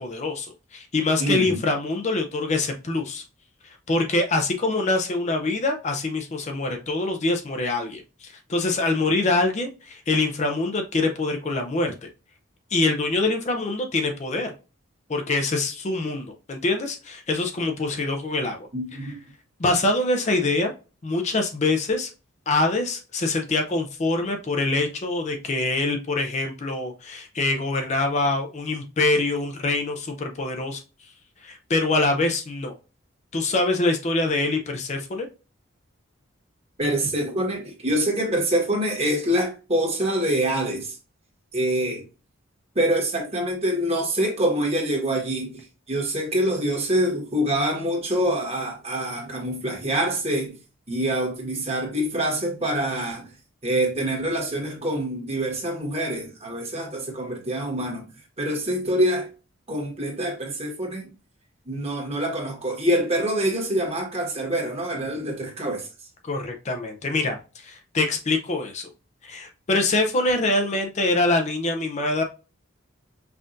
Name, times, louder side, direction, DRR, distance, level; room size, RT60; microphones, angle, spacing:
voice 1, 0.0-3.2 3.6-12.1 12.7-14.5 15.1-18.7 19.0-19.1 19.6-20.7 21.0-22.1 22.5-30.8 31.4-32.8 33.3-35.3 66.2-68.9 69.2-72.2, left 2 dB, 35° left, 0.5 m, -24 dB
voice 2, 1.2-1.6 18.7-19.2 36.8-41.0 41.5-42.0 42.7-50.5 50.9-53.3 53.6-58.1 58.4-59.3 59.7-61.1 61.6-65.9, right 1 dB, 30° right, 1.4 m, -25 dB
5.5 x 2.4 x 2.6 m
head